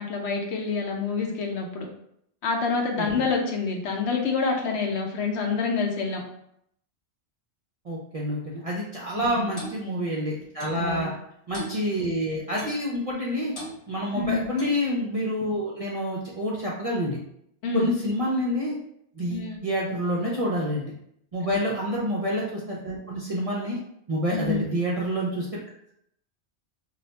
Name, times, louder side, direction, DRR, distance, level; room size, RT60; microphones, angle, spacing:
voice 1, 0.0-1.9 2.4-6.2 9.1-9.5 10.7-11.1 14.1-14.5 17.6-17.9 19.3-19.6 21.4-21.6 24.3-24.6, left 4 dB, 70° left, 1 dB, 0.9 m, -27 dB
voice 2, 7.8-11.1 11.5-13.5 13.9-17.2 17.7-18.8 19.2-20.9 21.3-23.8 24.1-25.5, equal, 50° right, -5 dB, 0.4 m, -28 dB
Clock, 9.6-9.8 10.6-10.8 11.5-11.8 12.6-12.8 13.5-13.8 14.6-14.8, equal, 30° left, 0.8 m, -38 dB
2.4 x 2.2 x 3.9 m, 0.73 s
omnidirectional pair, 1.2 m